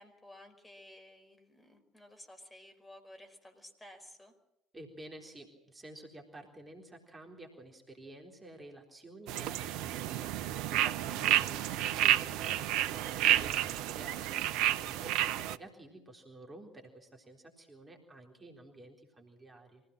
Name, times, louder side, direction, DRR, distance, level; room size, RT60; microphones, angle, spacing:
voice 1, 0.0-4.3 11.1-11.4 15.3-15.5, left 1 dB, 10° left, 5 dB, 5.1 m, -54 dB
voice 2, 4.7-19.8, right 2 dB, 20° right, 1 dB, 3.9 m, -51 dB
sound 1, 9.3-15.6, right 12 dB, 60° right, 0.7 m, -30 dB
24.5 x 16.5 x 7.6 m, 0.87 s
figure-of-eight pair, 60°, 0 cm